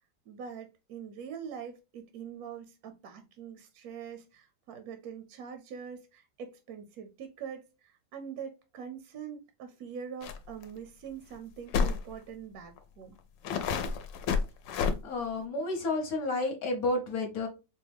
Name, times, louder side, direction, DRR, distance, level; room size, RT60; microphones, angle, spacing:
voice 1, 0.3-13.2, right 7 dB, 70° right, 0.9 m, -43 dB
sound 1, 10.2-10.4 10.6-10.7 11.7-12.0 12.8-12.9 13.4-14.9, left 6 dB, 85° left, 1.3 m, -29 dB
voice 2, 14.8-17.5, left 2 dB, 60° left, 1.2 m, -31 dB
4.6 x 2.2 x 3.3 m
omnidirectional pair, 1.9 m